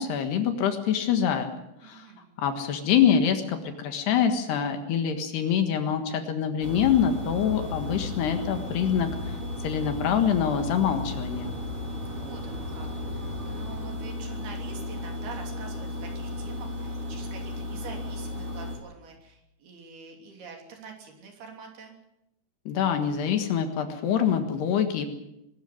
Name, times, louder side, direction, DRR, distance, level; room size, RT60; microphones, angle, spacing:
voice 1, 0.0-1.5 1.8-2.1 2.4-9.3 9.6-11.5 22.7-25.1, left 8 dB, 65° left, 7 dB, 3.4 m, -25 dB
voice 2, 1.8-2.3 12.1-21.9, right 5 dB, 55° right, 2 dB, 4.8 m, -45 dB
sound 1, 6.6-18.8, left 1 dB, 30° right, 4.3 m, -34 dB
23.0 x 13.5 x 9.5 m, 0.86 s
omnidirectional pair, 5.4 m